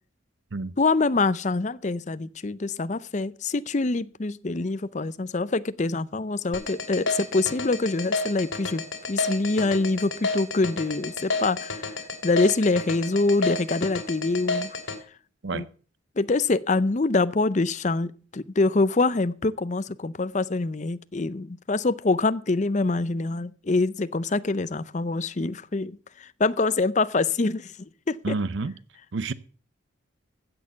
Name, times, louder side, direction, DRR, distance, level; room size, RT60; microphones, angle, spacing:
voice 1, 0.8-8.8 9.1-14.8 15.5-15.7 16.2-28.4, left 3 dB, 35° left, 0.5 m, -25 dB
sound 1, 6.5-15.0, left 3 dB, 80° left, 2.5 m, -29 dB
voice 2, 28.2-28.7 29.1-29.3, right 3 dB, 65° right, 0.7 m, -29 dB
15.5 x 6.6 x 6.9 m
head